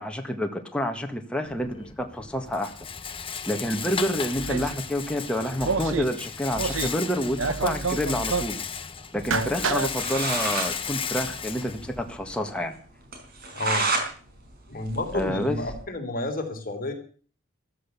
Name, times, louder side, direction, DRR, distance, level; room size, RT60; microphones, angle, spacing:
voice 1, 0.0-2.7 3.5-8.6 9.1-12.8 15.1-15.6, equal, 5° left, 3 dB, 1.8 m, -28 dB
Rattle, 1.5-12.5, left 6 dB, 25° left, 1.2 m, -35 dB
sound 1, 4.3-4.8 5.6-6.1 6.5-7.0 7.3-8.6 9.2-9.9, right 4 dB, 75° right, 1.1 m, -28 dB
sound 2, 9.9-10.7 11.1-11.2 11.4-11.5 11.9-12.0 12.4-12.5 13.1-14.1 14.5-15.8, right 3 dB, 50° right, 5.2 m, -29 dB
voice 2, 13.5-13.9 14.7-16.9, left 2 dB, 45° left, 4 dB, 3.6 m, -30 dB
14.5 x 14.0 x 7.0 m, 0.43 s
head